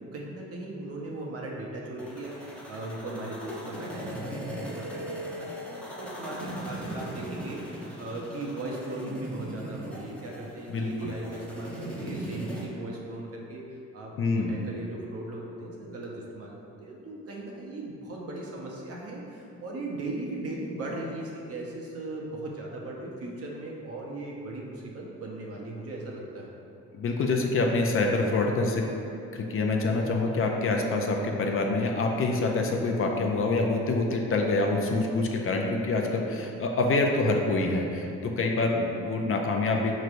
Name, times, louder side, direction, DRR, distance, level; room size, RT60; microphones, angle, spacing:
voice 1, 0.0-26.5, right 2 dB, 50° right, -2 dB, 0.7 m, -38 dB
sound 1, 2.0-12.6, right 1 dB, 5° left, 0.7 m, -39 dB
voice 2, 10.7-11.1 14.2-14.6 26.9-28.8 29.3-39.9, left 3 dB, 45° left, 1 dB, 0.4 m, -26 dB
4.4 x 3.1 x 2.5 m, 2.7 s
cardioid pair, 90°, 30 cm